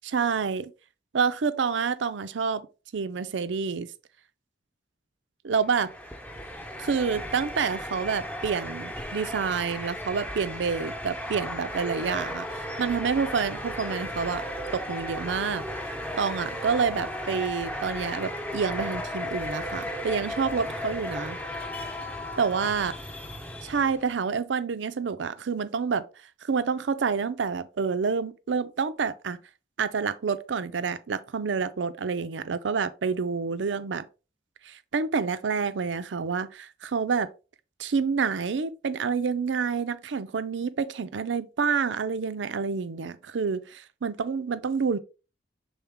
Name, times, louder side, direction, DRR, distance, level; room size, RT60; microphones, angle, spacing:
voice 1, 0.0-0.7 1.1-2.7 2.9-3.9 5.4-5.9 6.8-14.5 14.7-15.6 16.2-21.4 22.4-22.9 23.6-26.0 26.4-29.4 29.8-34.0 34.6-37.3 37.8-45.0, right 5 dB, 80° right, 0.5 m, -28 dB
sound 1, 5.6-24.1, equal, 10° left, 0.8 m, -35 dB
7.1 x 3.8 x 3.6 m
head